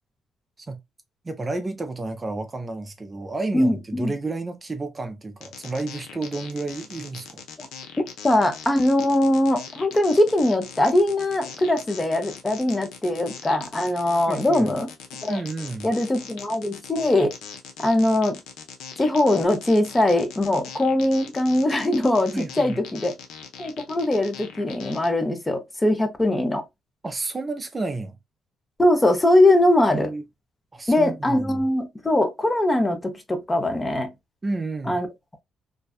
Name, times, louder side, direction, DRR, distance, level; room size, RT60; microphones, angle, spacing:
voice 1, 1.2-7.4 14.3-14.7 15.3-15.9 22.3-22.8 27.0-28.2 29.9-30.2 30.7-31.6 34.4-35.0, right 3 dB, 25° right, 0.4 m, -31 dB
voice 2, 3.5-4.1 7.6-7.7 8.2-14.9 15.2-15.4 15.8-17.3 17.8-18.4 19.0-23.1 23.6-26.6 28.8-30.1 30.9-34.1 34.9-35.1, left 1 dB, 20° left, 0.6 m, -21 dB
sound 1, 5.4-25.1, left 7 dB, 90° left, 0.5 m, -41 dB
2.5 x 2.3 x 2.3 m
cardioid pair, 90°, 0 cm